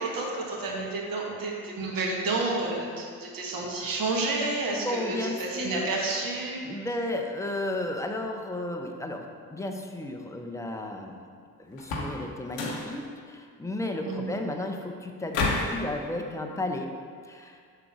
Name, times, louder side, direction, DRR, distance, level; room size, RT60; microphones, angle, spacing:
voice 1, 0.0-6.6 14.0-14.3, right 3 dB, 45° right, -2 dB, 1.3 m, -30 dB
voice 2, 4.7-5.8 6.6-11.1 11.6-16.9 17.3-17.6, left 1 dB, 5° left, 3 dB, 0.6 m, -33 dB
sound 1, 11.8-12.2 12.5-12.9 15.3-15.8, left 3 dB, 70° left, 1.0 m, -29 dB
5.9 x 3.8 x 4.8 m, 2.1 s
figure-of-eight pair, 45°, 46 cm